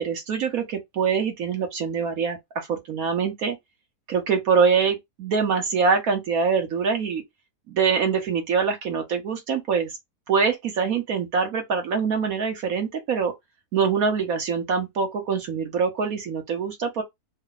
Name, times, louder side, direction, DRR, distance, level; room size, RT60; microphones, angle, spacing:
voice 1, 0.0-3.6 4.1-7.2 7.7-9.9 10.3-13.3 13.7-17.0, right 5 dB, 65° right, 1.2 m, -24 dB
3.3 x 2.2 x 3.7 m
omnidirectional pair, 1.7 m